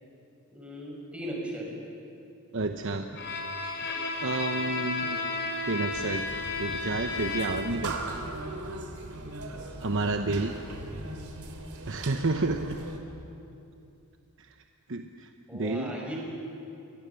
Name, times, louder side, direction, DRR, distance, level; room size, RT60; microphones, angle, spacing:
voice 1, 0.5-1.7 5.0-5.2 10.7-10.9 15.5-16.2, equal, 5° right, -3 dB, 5.7 m, -38 dB
voice 2, 2.5-3.1 4.2-5.2 5.7-6.2 6.6-8.2 9.8-10.6 11.9-12.8 14.4-14.5 14.9-15.9, right 3 dB, 60° right, 5 dB, 1.0 m, -30 dB
Bowed string instrument, 3.1-7.8, left 3 dB, 55° left, 4.7 m, -33 dB
sound 1, 5.9-13.0, right 2 dB, 80° right, 3.2 m, -39 dB
29.5 x 23.0 x 7.1 m, 2.7 s
head